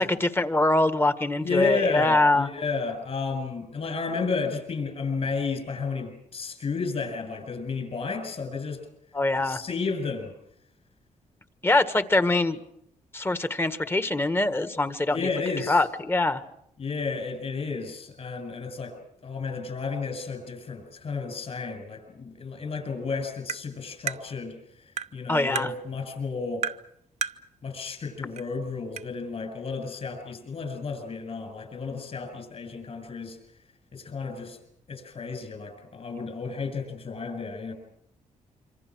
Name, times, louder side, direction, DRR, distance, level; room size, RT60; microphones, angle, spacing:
voice 1, 0.0-2.5 9.1-9.6 11.6-12.6 13.1-15.3 15.7-16.4 25.3-25.7, left 2 dB, 15° left, 11 dB, 1.6 m, -23 dB
voice 2, 1.4-8.8 9.4-10.3 15.0-15.8 16.8-19.0 19.2-24.6 25.1-26.7 27.6-33.4 33.9-34.6 34.9-37.7, left 4 dB, 50° left, 6 dB, 7.5 m, -32 dB
Tap, 23.5-23.6 24.1-24.2 25.0-25.1 25.6-25.7 26.6-26.8 27.2-27.4 28.4-28.5 29.0-29.1, right 7 dB, 60° right, 0.9 m, -30 dB
26.5 x 25.5 x 6.3 m, 0.73 s
cardioid pair, 95°, 13 cm